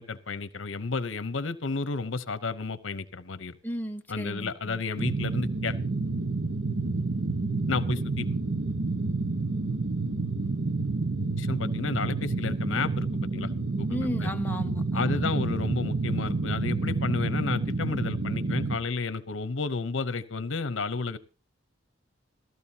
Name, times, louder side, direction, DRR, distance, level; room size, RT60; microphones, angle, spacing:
voice 1, 0.0-3.6 4.1-5.8 7.7-8.3 11.4-13.1 13.3-13.5 13.8-14.3 14.9-21.2, left 4 dB, 70° left, 13 dB, 0.8 m, -31 dB
voice 2, 3.6-4.8 13.9-15.4, equal, 10° left, 3 dB, 0.8 m, -35 dB
sound 1, 5.0-18.8, right 3 dB, 70° right, 1.1 m, -29 dB
18.5 x 14.0 x 2.8 m, 0.32 s
head